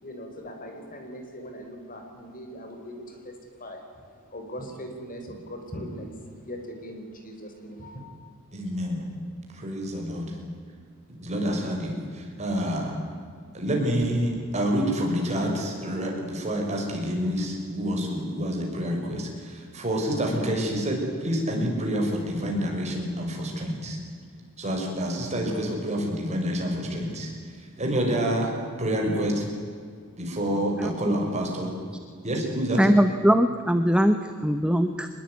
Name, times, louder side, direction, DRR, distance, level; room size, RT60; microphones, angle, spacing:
voice 1, 0.0-8.0, equal, 40° left, 4 dB, 4.5 m, -40 dB
voice 2, 8.5-9.1 9.6-10.3 11.2-12.9 13.5-24.0 24.6-27.3 27.8-28.5 28.8-29.4 30.2-31.7 32.2-32.8, equal, 30° right, 0 dB, 6.0 m, -28 dB
voice 3, 30.8-31.1 32.8-35.1, equal, 5° right, 8 dB, 0.9 m, -21 dB
24.5 x 21.0 x 9.6 m, 2.1 s
head